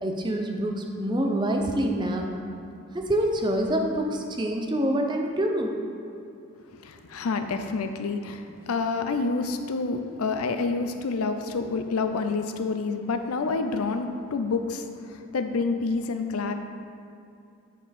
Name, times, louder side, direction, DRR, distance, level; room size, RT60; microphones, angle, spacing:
voice 1, 0.0-2.3 2.9-5.8, right 1 dB, 20° right, 2 dB, 0.5 m, -26 dB
voice 2, 6.8-16.5, left 4 dB, 85° left, 7 dB, 0.5 m, -28 dB
8.9 x 4.5 x 4.2 m, 2.5 s
head